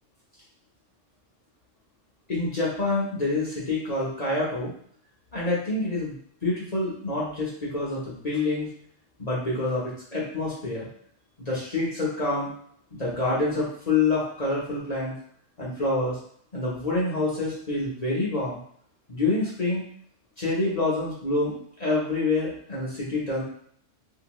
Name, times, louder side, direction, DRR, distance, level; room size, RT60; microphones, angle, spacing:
voice 1, 2.3-4.7 5.3-6.1 6.4-8.7 9.2-10.9 11.4-12.5 12.9-15.1 15.6-16.2 16.5-18.6 19.1-19.8 20.4-23.4, left 2 dB, 35° left, -7 dB, 0.9 m, -27 dB
2.8 x 2.7 x 3.0 m, 0.62 s
omnidirectional pair, 1.3 m